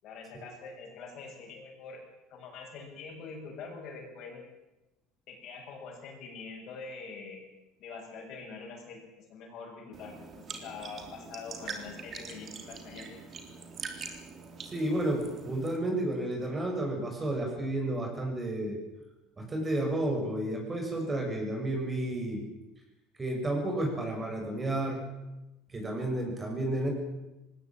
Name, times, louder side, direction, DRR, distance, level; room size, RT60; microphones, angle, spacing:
voice 1, 0.0-2.0 2.3-4.4 5.3-7.4 7.8-9.0 9.3-13.2, left 4 dB, 55° left, 1 dB, 7.4 m, -44 dB
sound 1, 9.9-15.8, right 5 dB, 35° right, 3.8 m, -43 dB
voice 2, 14.6-18.8 19.4-22.4 23.2-25.0 25.7-26.9, right 1 dB, 20° right, 2 dB, 6.9 m, -31 dB
20.0 x 17.0 x 9.0 m, 0.98 s
supercardioid pair, 115°, 0 cm